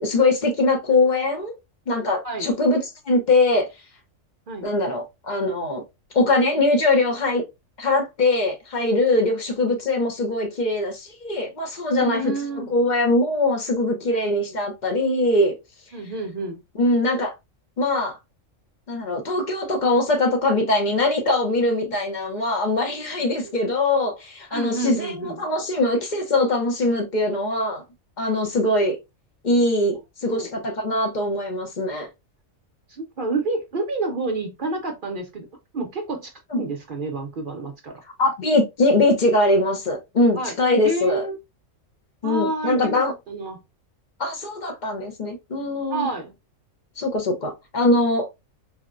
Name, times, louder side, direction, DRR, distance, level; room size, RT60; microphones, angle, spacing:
voice 1, 0.0-1.5 1.9-2.8 3.1-3.7 4.6-5.8 6.1-7.4 7.8-12.3 12.7-15.5 16.8-17.3 17.8-18.2 18.9-27.8 28.2-29.0 29.4-32.1 36.5-36.6 38.2-41.3 42.2-43.1 44.2-46.1 47.0-48.3, left 2 dB, 45° left, 0.7 m, -22 dB
voice 2, 11.9-12.7 15.9-16.6 23.4-23.5 24.5-25.4 30.2-30.5 32.9-35.5 35.7-38.0 40.3-40.5 40.8-41.4 42.2-43.0 43.3-43.6 45.9-46.3, right 3 dB, 60° right, 0.6 m, -29 dB
4.2 x 2.1 x 2.4 m
omnidirectional pair, 1.4 m